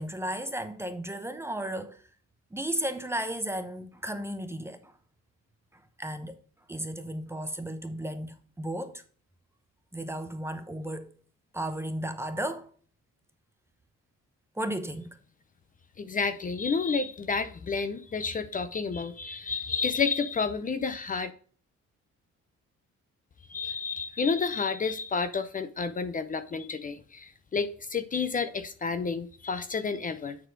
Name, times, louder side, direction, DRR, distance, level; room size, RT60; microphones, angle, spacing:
voice 1, 0.0-2.0 2.5-4.9 5.7-6.4 6.7-9.0 9.9-11.1 11.5-12.7 14.6-15.2, right 1 dB, 10° right, 0.7 m, -34 dB
voice 2, 16.0-21.3 23.5-30.4, left 5 dB, 30° left, 0.6 m, -30 dB
9.4 x 4.2 x 4.5 m
cardioid pair, 140°, 29 cm